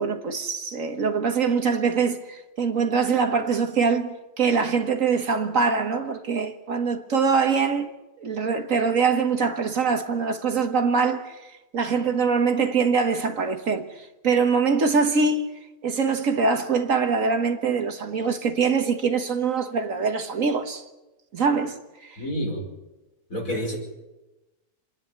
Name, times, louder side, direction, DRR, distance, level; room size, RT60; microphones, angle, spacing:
voice 1, 0.0-7.9 8.2-15.5 15.8-20.8 21.3-22.2, right 5 dB, 60° right, 1.6 m, -23 dB
voice 2, 22.2-22.6 23.3-23.8, equal, 60° left, 5.8 m, -28 dB
27.5 x 10.0 x 9.4 m
omnidirectional pair, 1.6 m